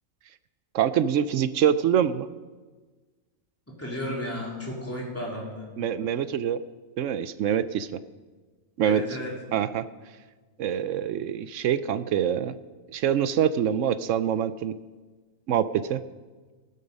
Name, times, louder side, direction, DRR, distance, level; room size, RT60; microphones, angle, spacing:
voice 1, 0.7-2.3 5.8-6.6 7.0-8.0 8.8-9.0 9.5-9.8 10.6-12.6 12.9-14.7 15.5-16.0, right 9 dB, 70° right, 14 dB, 0.9 m, -25 dB
voice 2, 3.8-5.7 8.8-9.3, left 1 dB, 10° left, -4 dB, 3.4 m, -33 dB
15.0 x 12.5 x 5.3 m, 1.3 s
omnidirectional pair, 1.4 m